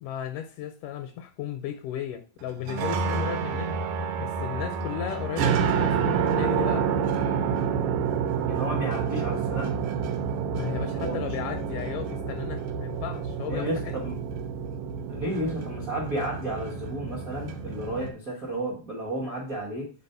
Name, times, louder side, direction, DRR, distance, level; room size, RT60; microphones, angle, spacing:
voice 1, 0.0-3.8 4.2-6.9 10.5-13.9, left 10 dB, 80° left, 7 dB, 2.0 m, -35 dB
sound 1, 2.5-18.1, right 6 dB, 75° right, 2.3 m, -28 dB
voice 2, 8.4-9.8 10.9-11.2 13.5-14.2 15.1-19.9, right 1 dB, 55° right, -2 dB, 0.9 m, -32 dB
5.3 x 4.2 x 5.4 m, 0.37 s
omnidirectional pair, 4.0 m